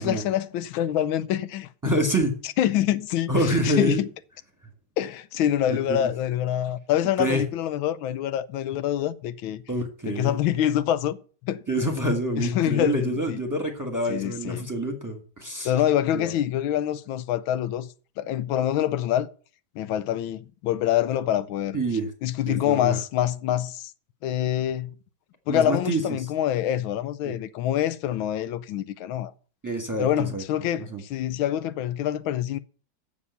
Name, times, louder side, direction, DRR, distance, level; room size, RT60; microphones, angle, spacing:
voice 1, 0.0-1.7 2.4-4.1 5.0-9.6 10.1-11.2 11.4-11.6 12.4-13.4 14.1-14.7 15.6-19.3 19.7-21.8 22.2-23.9 24.2-24.9 25.5-29.3 30.0-32.6, left 11 dB, 90° left, 1.5 m, -26 dB
voice 2, 1.8-2.4 3.3-4.0 5.7-6.1 7.2-7.4 9.7-10.4 11.7-15.7 16.1-16.3 21.7-22.1 22.5-23.0 25.5-26.0 27.2-27.4 29.6-30.4 30.8-31.0, right 1 dB, 10° right, 1.4 m, -27 dB
7.3 x 6.8 x 8.2 m
omnidirectional pair, 2.1 m